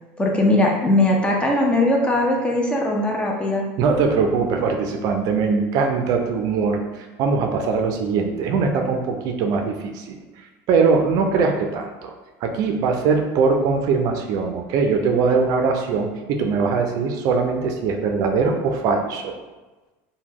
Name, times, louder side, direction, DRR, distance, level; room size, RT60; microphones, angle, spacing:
voice 1, 0.2-3.6, left 1 dB, 15° left, 0 dB, 0.5 m, -19 dB
voice 2, 3.8-12.1 12.4-19.3, right 5 dB, 55° right, 4 dB, 0.4 m, -21 dB
2.9 x 2.1 x 3.5 m, 1.2 s
supercardioid pair, 125°, 7 cm